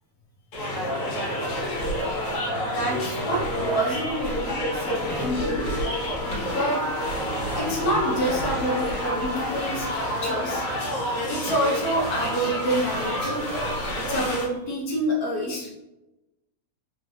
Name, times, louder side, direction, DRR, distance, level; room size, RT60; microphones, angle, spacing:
sound 1, 0.5-14.4, equal, 90° left, 2.3 m, -28 dB
sound 2, 0.7-14.4, equal, 60° right, 0.8 m, -39 dB
voice 1, 2.5-5.7 6.5-6.8 7.6-10.6 11.2-13.4 13.9-15.7, right 1 dB, 70° left, -1 dB, 0.8 m, -28 dB
4.6 x 3.1 x 2.6 m, 0.98 s
omnidirectional pair, 2.4 m